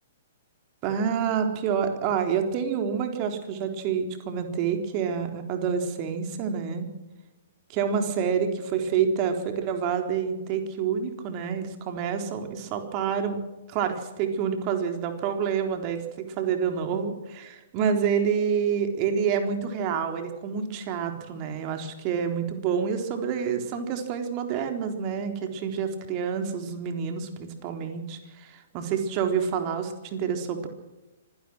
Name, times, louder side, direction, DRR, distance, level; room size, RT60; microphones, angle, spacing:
voice 1, 0.8-6.9 7.7-13.4 13.7-16.0 16.4-30.7, right 7 dB, 35° right, 5 dB, 3.8 m, -28 dB
25.5 x 17.0 x 6.2 m, 1.0 s
figure-of-eight pair, 115°, 0 cm